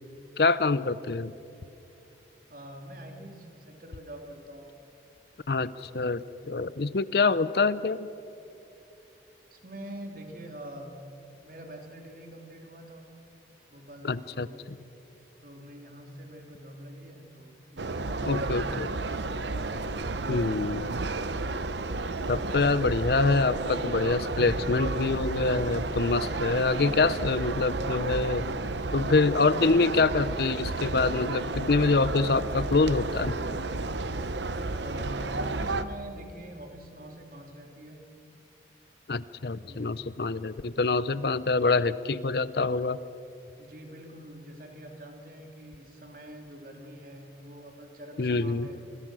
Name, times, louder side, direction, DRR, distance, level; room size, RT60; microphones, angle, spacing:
voice 1, 0.4-1.3 5.5-8.1 14.0-14.8 18.2-18.9 20.3-20.9 22.3-28.4 28.9-33.3 39.1-43.0 48.2-48.7, left 3 dB, 55° left, 16 dB, 0.6 m, -25 dB
voice 2, 2.5-4.7 9.5-10.9 11.3-13.0 13.7-14.5 15.4-19.2 34.8-38.0 39.6-40.0 43.6-48.8, right 1 dB, 50° right, 3 dB, 3.0 m, -44 dB
sound 1, 17.8-35.8, right 3 dB, 70° right, 0.9 m, -32 dB
29.5 x 21.0 x 6.2 m, 2.9 s
head